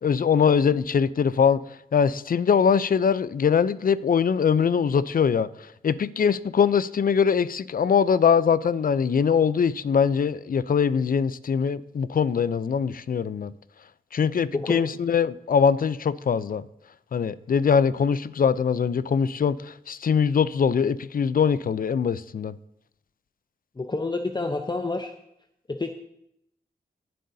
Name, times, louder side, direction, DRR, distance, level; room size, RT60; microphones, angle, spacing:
voice 1, 0.0-1.6 1.9-5.5 5.8-13.5 14.1-16.6 17.1-22.5, left 6 dB, 55° left, 0.5 m, -22 dB
voice 2, 14.5-14.9 23.8-25.1 25.7-25.9, left 3 dB, 25° left, 0.8 m, -28 dB
18.5 x 7.7 x 2.8 m
cardioid pair, 45°, 18 cm